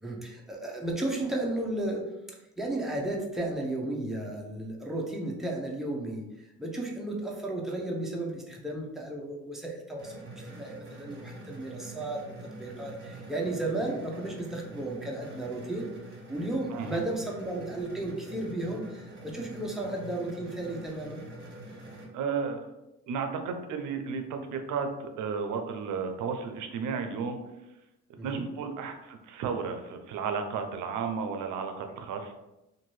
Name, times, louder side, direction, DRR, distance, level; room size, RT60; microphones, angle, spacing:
voice 1, 0.0-10.2 10.5-15.9 16.3-21.3 28.2-28.4, right 2 dB, ahead, -2 dB, 0.7 m, -34 dB
sound 1, 10.0-22.0, right 1 dB, 35° right, 1.3 m, -45 dB
voice 2, 22.1-22.7 23.1-27.4 28.2-32.3, right 5 dB, 85° right, 5 dB, 0.5 m, -33 dB
2.6 x 2.6 x 3.1 m, 0.93 s
cardioid pair, 90°, 30 cm